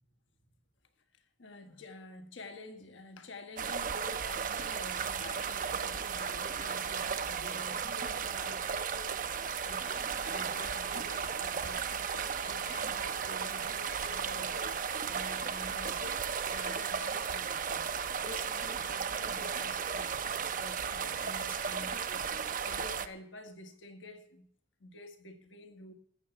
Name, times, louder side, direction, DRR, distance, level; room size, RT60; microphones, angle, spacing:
voice 1, 1.1-9.2 9.6-17.9 18.2-22.3 22.6-24.5 24.8-25.9, left 2 dB, 80° left, 1.5 m, -49 dB
sound 1, 3.6-23.1, right 6 dB, 45° right, 0.6 m, -35 dB
13.5 x 7.2 x 7.0 m
head